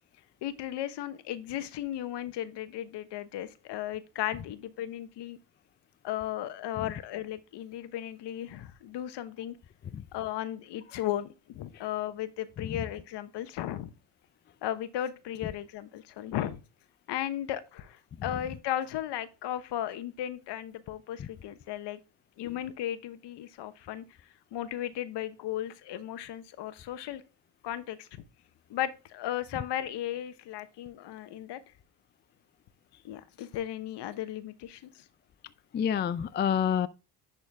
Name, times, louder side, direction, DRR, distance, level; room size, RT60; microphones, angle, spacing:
voice 1, 0.4-5.4 6.0-9.6 10.1-13.9 14.6-16.6 17.1-22.0 22.4-24.0 24.5-27.2 27.6-28.2 28.7-31.6 33.0-35.0, left 12 dB, 60° left, 1.1 m, -35 dB
voice 2, 35.7-36.9, left 8 dB, 25° left, 0.4 m, -28 dB
10.5 x 4.3 x 3.5 m
supercardioid pair, 85°, 46 cm